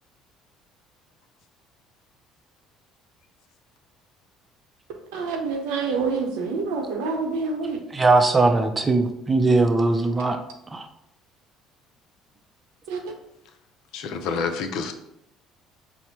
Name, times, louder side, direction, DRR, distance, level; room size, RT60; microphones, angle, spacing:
voice 1, 5.1-7.8 12.9-13.0, right 4 dB, 90° right, 3 dB, 0.7 m, -27 dB
voice 2, 7.9-10.4 10.7-10.9, right 3 dB, 25° right, 7 dB, 0.5 m, -20 dB
voice 3, 13.9-14.9, left 5 dB, 70° left, 7 dB, 0.5 m, -28 dB
4.5 x 2.1 x 4.2 m, 0.80 s
supercardioid pair, 90°, 0 cm